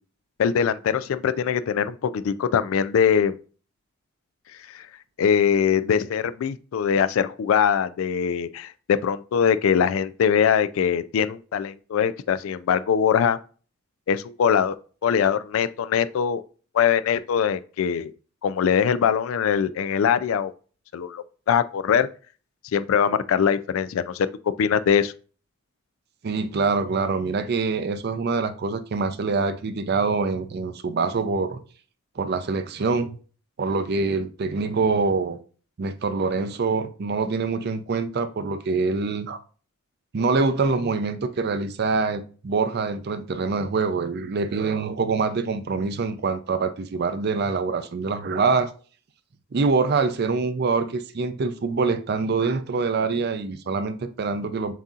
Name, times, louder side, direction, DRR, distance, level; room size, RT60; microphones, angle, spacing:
voice 1, 0.4-3.4 4.7-4.9 5.2-13.4 14.1-14.8 15.0-16.4 16.7-18.1 18.4-20.5 20.9-22.1 22.7-24.3 24.6-25.1, left 7 dB, 70° left, 0.3 m, -22 dB
voice 2, 26.2-31.6 32.2-33.2 33.6-35.4 35.8-39.4 40.1-48.7 49.5-54.7, right 4 dB, 50° right, 0.4 m, -25 dB
7.2 x 2.8 x 2.4 m
head